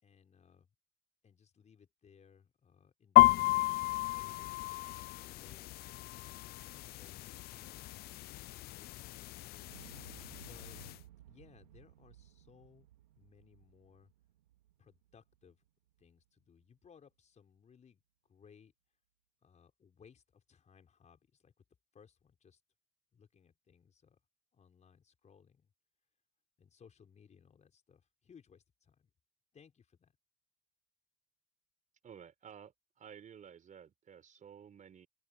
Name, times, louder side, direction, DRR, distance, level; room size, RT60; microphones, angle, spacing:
voice 1, 0.0-0.7 1.2-3.9 4.1-7.8 8.8-9.6 10.5-10.8 11.3-12.9 13.2-14.1 14.8-15.6 16.0-18.7 19.4-21.6 21.9-22.6 23.1-24.2 24.5-25.7 26.6-29.1 29.5-30.1, left 7 dB, 35° left, 5.3 m, -63 dB
sound 1, 3.2-11.0, left 19 dB, 50° left, 0.5 m, -32 dB
Explosion, 9.6-15.7 16.0-16.1, right 13 dB, 90° right, 2.2 m, -58 dB
voice 2, 32.0-35.1, right 8 dB, 40° right, 4.7 m, -53 dB
open air
hypercardioid pair, 75°, 20 cm